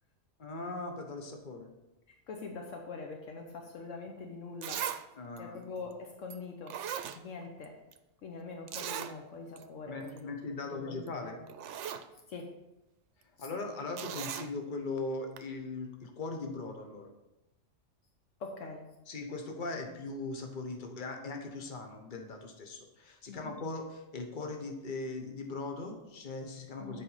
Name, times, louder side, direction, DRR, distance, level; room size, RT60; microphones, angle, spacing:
voice 1, 0.4-1.7 5.2-5.6 9.9-11.4 13.4-17.1 19.1-27.0, left 3 dB, 40° left, 4 dB, 1.2 m, -39 dB
voice 2, 2.3-4.9 5.4-6.8 7.1-7.8 8.2-11.4 12.3-12.5 13.4-13.5 18.4-18.9 23.3-23.5 26.8-27.0, left 4 dB, 80° left, 2 dB, 1.2 m, -44 dB
Zipper (clothing), 4.1-4.2 4.6-5.0 5.4-5.5 6.3-6.4 6.7-7.7 7.9-8.0 8.7-9.1 9.6-9.7 10.0-10.2 11.1-11.2 11.5-12.1 14.0-14.5 15.4-15.5, right 9 dB, 75° right, 0.9 m, -38 dB
7.5 x 5.1 x 5.6 m, 0.95 s
omnidirectional pair, 1.3 m